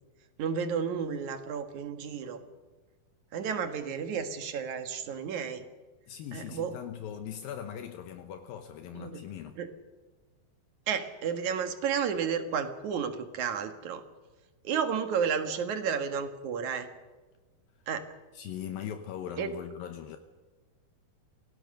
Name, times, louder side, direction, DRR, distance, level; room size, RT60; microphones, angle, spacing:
voice 1, 0.4-2.4 3.3-5.6 6.3-6.7 8.9-9.2 9.6-9.7 10.9-14.0 14.6-16.9 17.9-18.1 19.4-19.5, right 7 dB, 60° right, 2.7 m, -32 dB
voice 2, 6.1-9.6 18.3-20.2, left 9 dB, 75° left, 2.7 m, -40 dB
26.0 x 18.0 x 6.7 m
omnidirectional pair, 4.4 m